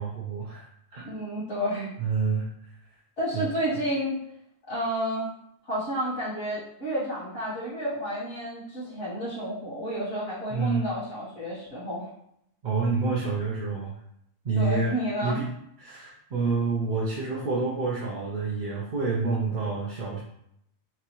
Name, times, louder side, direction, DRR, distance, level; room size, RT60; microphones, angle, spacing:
voice 1, 0.0-1.1 2.0-2.5 2.9-3.0 3.3-3.5 3.7-3.8 10.5-10.9 12.6-14.0 14.4-14.9 15.2-15.5 15.8-20.2, right 4 dB, 50° right, -5 dB, 0.8 m, -28 dB
voice 2, 1.0-1.9 3.2-4.2 4.7-5.3 5.7-12.1 14.6-15.4, equal, 85° left, -11 dB, 1.8 m, -30 dB
6.1 x 2.4 x 3.0 m, 0.75 s
omnidirectional pair, 1.2 m